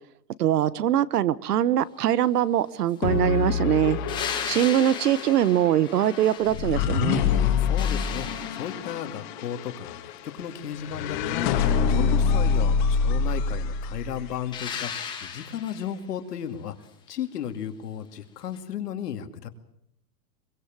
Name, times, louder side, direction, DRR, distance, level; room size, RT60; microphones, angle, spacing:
voice 1, 0.4-4.0 4.4-7.2, right 11 dB, 70° right, 19 dB, 1.1 m, -22 dB
sound 1, 3.0-14.3, left 6 dB, 30° left, 2.2 m, -26 dB
sound 2, 4.1-7.0 7.4-9.1 14.5-16.0 18.5-18.6, left 7 dB, 10° left, 2.0 m, -36 dB
voice 2, 7.3-16.7 17.1-19.5, left 9 dB, 70° left, 7 dB, 2.6 m, -35 dB
23.0 x 23.0 x 7.4 m, 0.76 s
supercardioid pair, 175°, 49 cm